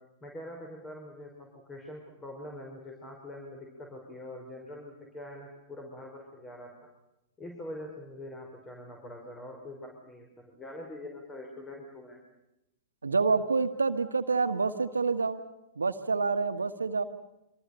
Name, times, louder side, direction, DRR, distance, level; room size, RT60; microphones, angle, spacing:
voice 1, 0.2-6.7 7.4-12.2, left 1 dB, 20° left, 1 dB, 5.7 m, -44 dB
voice 2, 13.0-15.4 15.7-17.0, right 4 dB, 85° right, 9 dB, 1.5 m, -27 dB
27.0 x 25.0 x 6.9 m, 0.89 s
figure-of-eight pair, 100°, 0 cm